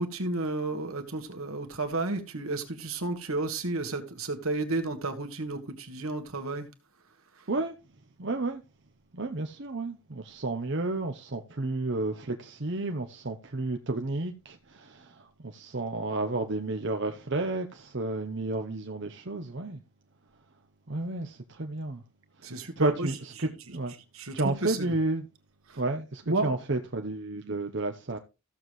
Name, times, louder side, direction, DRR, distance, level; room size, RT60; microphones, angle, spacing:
voice 1, 0.0-6.7 22.4-23.1 24.1-24.9 25.7-25.8 26.3-26.6, right 2 dB, 75° right, 1.7 m, -32 dB
voice 2, 8.2-8.6 9.1-19.8 20.9-22.0 22.4-23.9 24.3-25.3 25.8-28.2, right 2 dB, 55° right, 0.8 m, -31 dB
15.0 x 7.2 x 3.1 m
head